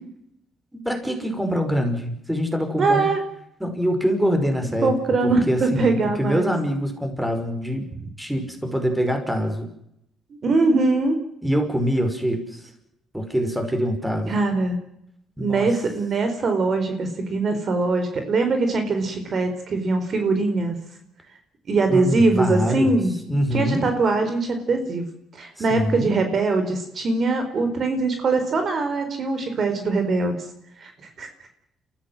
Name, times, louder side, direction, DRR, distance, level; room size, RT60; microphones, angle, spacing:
voice 1, 0.7-3.1 3.6-4.9 5.2-7.9 8.2-9.7 11.4-12.6 13.1-14.3 15.4-15.7 21.9-23.0 23.3-23.8 25.6-26.2, equal, 5° right, 6 dB, 5.5 m, -24 dB
voice 2, 2.8-3.2 4.8-6.5 7.9-8.0 10.4-11.2 14.3-14.8 15.4-20.8 21.7-23.1 23.5-25.1 25.3-30.5 30.8-31.3, right 3 dB, 50° right, 7 dB, 4.3 m, -22 dB
29.0 x 15.0 x 7.7 m, 0.78 s
cardioid pair, 90°, 0 cm